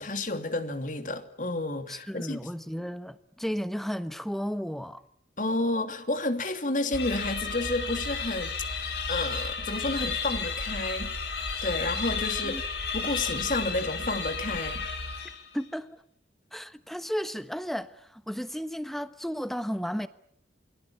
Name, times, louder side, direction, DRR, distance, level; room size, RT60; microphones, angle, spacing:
voice 1, 0.0-2.4 5.4-11.1 11.6-12.7 12.9-14.9, left 2 dB, 45° left, 2.9 m, -31 dB
voice 2, 1.9-5.0 12.4-12.6 15.5-16.0 16.5-20.1, equal, ahead, 1.2 m, -34 dB
sound 1, 6.9-15.6, left 4 dB, 70° left, 5.7 m, -33 dB
28.5 x 23.5 x 8.9 m
head